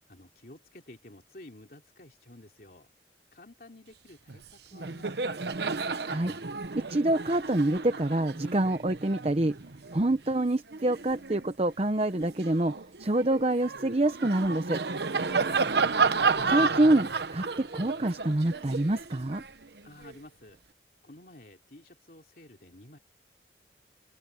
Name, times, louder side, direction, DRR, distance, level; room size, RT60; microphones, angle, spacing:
voice 1, 0.0-2.9 3.3-5.4 15.1-15.9 19.8-20.6 21.0-23.0, left 1 dB, 55° left, 3.1 m, -51 dB
Laughter, 4.3-4.5 4.7-11.5 12.0-20.1, right 4 dB, 70° right, 1.0 m, -32 dB
voice 2, 6.7-9.6 9.9-12.7 13.0-14.8 16.5-19.4, right 1 dB, 35° right, 0.8 m, -26 dB
open air
head